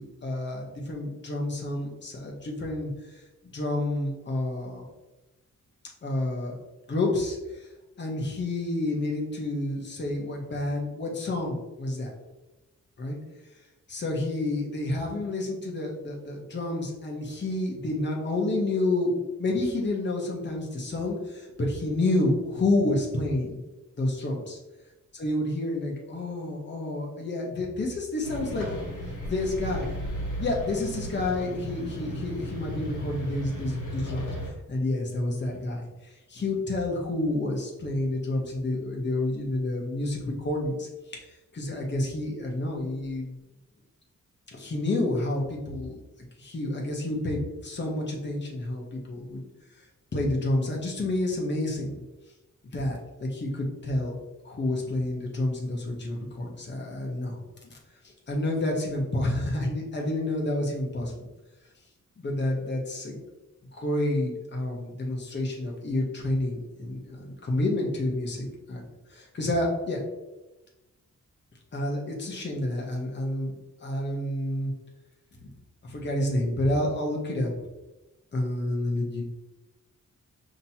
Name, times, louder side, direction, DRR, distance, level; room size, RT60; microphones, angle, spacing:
voice 1, 0.0-2.9 3.5-4.9 6.0-6.6 6.9-7.7 8.0-12.1 13.0-13.2 13.9-23.6 24.0-24.6 25.1-28.9 29.3-29.9 30.4-34.3 34.7-41.2 41.5-43.4 44.5-46.0 46.4-49.4 50.1-52.0 52.7-54.1 54.4-57.8 58.0-61.3 62.2-63.2 63.7-70.0 71.7-74.7 75.4-75.5 75.8-77.5 78.3-79.2, left 2 dB, 35° left, -1 dB, 0.9 m, -29 dB
sound 1, 28.2-34.5, equal, 75° left, 1.5 m, -35 dB
5.6 x 2.9 x 2.8 m, 1.0 s
wide cardioid pair, 170°, 31 cm